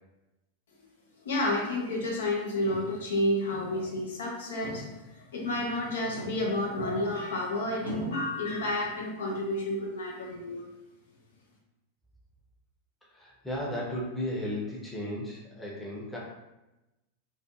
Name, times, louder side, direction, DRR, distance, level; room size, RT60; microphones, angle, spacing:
voice 1, 1.2-4.8 5.1-10.7, left 1 dB, 60° left, -1 dB, 0.4 m, -30 dB
sound 1, 3.1-3.2 3.5-3.9 4.3-4.4 4.6-5.4 6.0-7.4 7.9-8.2, equal, 75° right, 0.5 m, -41 dB
voice 2, 13.1-16.2, left 1 dB, 5° left, -5 dB, 0.7 m, -35 dB
2.5 x 2.5 x 2.5 m, 0.99 s
figure-of-eight pair, 90°, 0 cm